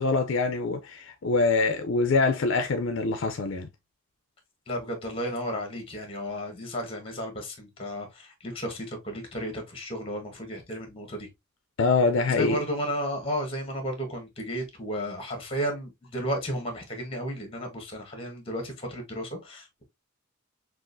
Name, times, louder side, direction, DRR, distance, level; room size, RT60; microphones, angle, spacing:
voice 1, 0.0-3.7 11.8-12.6, left 3 dB, 60° left, 0.5 m, -24 dB
voice 2, 4.7-11.3 12.4-19.8, equal, 25° left, 1.4 m, -33 dB
6.1 x 2.5 x 2.6 m
head